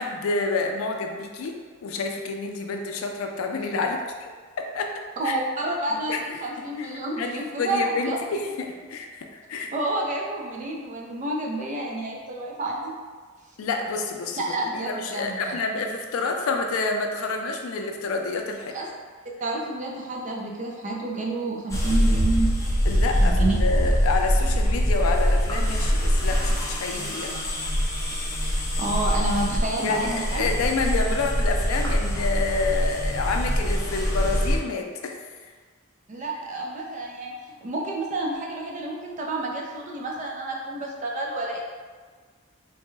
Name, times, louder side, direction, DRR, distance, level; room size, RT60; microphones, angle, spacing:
voice 1, 0.0-4.3 4.7-4.9 5.2-5.4 6.1-6.2 6.8-9.7 13.6-14.5 14.8-18.8 22.9-27.5 29.8-35.2, left 3 dB, 90° left, 3 dB, 0.4 m, -28 dB
voice 2, 5.2-8.2 9.7-12.9 14.4-15.6 18.7-18.9 19.4-22.5 23.2-23.6 28.4-30.4 36.1-41.6, right 2 dB, 35° right, -1 dB, 0.5 m, -29 dB
sound 1, 21.7-34.6, equal, 15° left, 0.5 m, -24 dB
3.4 x 2.2 x 3.1 m, 1.5 s
head